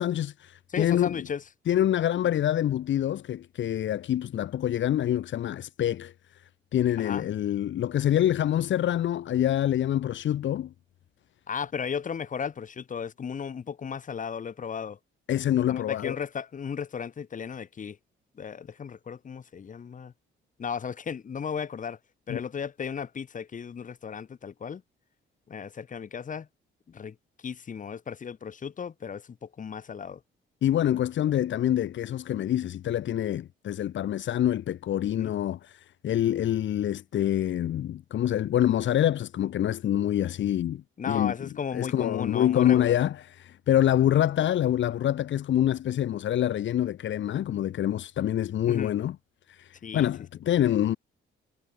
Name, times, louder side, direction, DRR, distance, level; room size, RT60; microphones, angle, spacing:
voice 1, 0.0-1.1 1.7-6.1 6.7-10.7 15.3-16.2 22.3-22.4 30.6-49.2 49.5-51.0, left 11 dB, 65° left, 3.9 m, -26 dB
voice 2, 0.7-1.4 7.0-7.3 11.5-15.0 15.7-18.0 18.3-20.1 20.6-22.0 22.3-24.8 25.5-26.5 26.9-30.2 35.2-35.3 41.0-43.0 48.7-48.9 49.8-50.1, left 7 dB, 40° left, 6.2 m, -35 dB
cardioid pair, 140°, 20 cm